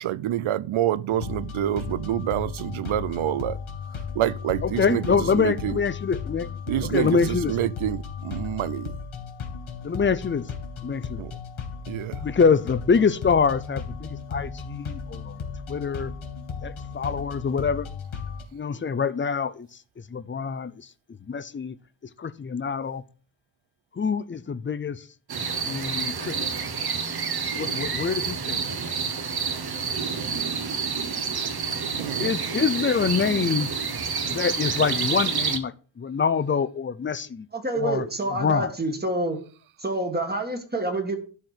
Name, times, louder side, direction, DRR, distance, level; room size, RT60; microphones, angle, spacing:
voice 1, 0.0-3.6 4.2-5.8 6.7-9.0 11.2-11.3 11.9-12.2 32.0-32.4, right 12 dB, 85° right, 0.6 m, -27 dB
sound 1, 1.1-18.4, left 6 dB, 90° left, 2.6 m, -35 dB
voice 2, 4.6-6.5 6.9-7.5 9.8-10.4 10.8-11.2 12.2-15.4 15.7-16.1 16.6-17.9 18.5-19.7 20.1-20.7 21.3-21.8 22.2-23.0 24.0-25.0 25.7-26.4 27.5-28.6 32.2-33.7 34.3-35.7 36.0-37.5 37.7-38.0 38.4-38.7, left 6 dB, 25° left, 0.5 m, -25 dB
sound 2, 25.3-35.6, right 5 dB, 50° right, 1.2 m, -28 dB
voice 3, 37.5-39.4 39.8-41.1, right 2 dB, 20° right, 1.6 m, -27 dB
11.5 x 4.4 x 6.5 m
wide cardioid pair, 170°, 47 cm